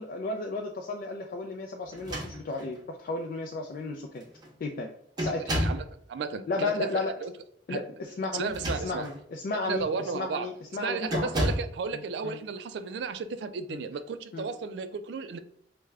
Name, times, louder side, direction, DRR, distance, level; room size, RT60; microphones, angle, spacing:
voice 1, 0.0-4.2 4.6-4.9 5.2-5.5 6.5-7.1 7.7-11.3 11.9-12.4 13.7-13.8 14.3-14.5, left 3 dB, 50° left, 0.3 m, -33 dB
sound 1, 1.9-2.8 3.7-3.8 4.2-4.5 5.2-5.9 8.4-9.2 9.8-10.0 11.1-11.8, equal, 25° right, 0.7 m, -32 dB
voice 2, 5.5-7.3 7.7-7.8 8.3-9.1 9.6-10.5 10.8-15.4, right 5 dB, 70° right, 0.3 m, -34 dB
3.2 x 2.1 x 3.4 m
head